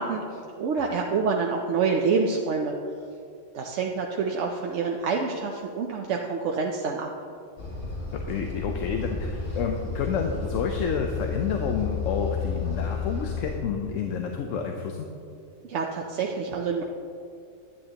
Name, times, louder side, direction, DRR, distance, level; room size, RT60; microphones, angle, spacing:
voice 1, 0.0-2.7 3.5-7.1 15.6-16.8, right 5 dB, 75° right, 1 dB, 0.9 m, -27 dB
sound 1, 7.6-13.6, left 5 dB, 65° left, 2.3 m, -32 dB
voice 2, 8.1-15.1, left 6 dB, 85° left, 3 dB, 1.0 m, -29 dB
11.0 x 10.0 x 2.9 m, 2.4 s
omnidirectional pair, 1.3 m